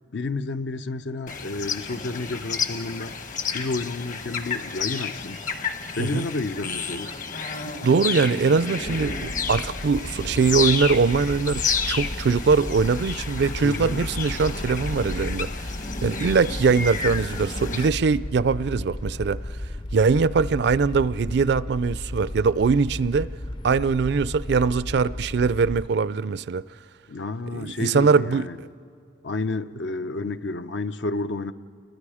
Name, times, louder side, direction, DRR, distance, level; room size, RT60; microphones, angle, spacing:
voice 1, 0.1-3.1 3.5-5.4 5.9-7.1 13.6-14.1 27.1-28.6 29.2-31.5, left 3 dB, 75° left, 0.7 m, -30 dB
sound 1, 1.3-17.9, left 5 dB, 45° left, 1.1 m, -31 dB
voice 2, 7.8-11.6 11.9-15.5 16.0-19.4 19.9-23.3 23.6-26.6 27.5-28.5, right 5 dB, 65° right, 0.4 m, -22 dB
sound 2, 8.8-25.9, left 1 dB, 25° left, 0.5 m, -34 dB
29.0 x 22.0 x 4.9 m
head